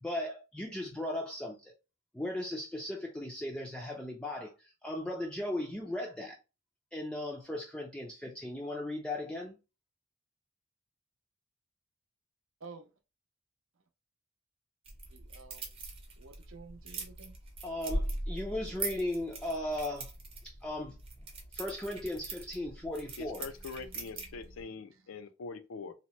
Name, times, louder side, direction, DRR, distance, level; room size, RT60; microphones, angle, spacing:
voice 1, 0.0-1.6 2.1-6.4 6.9-9.6 17.6-20.1 20.4-21.0 21.5-23.4, left 1 dB, 5° left, 0.4 m, -37 dB
voice 2, 12.6-12.9 15.1-15.8 16.2-17.4 23.3-24.6 24.9-25.0, right 4 dB, 75° right, 0.6 m, -53 dB
sound 1, 14.8-24.6, right 2 dB, 30° right, 0.6 m, -41 dB
voice 3, 23.2-25.9, left 4 dB, 85° left, 0.4 m, -43 dB
2.8 x 2.1 x 3.0 m
head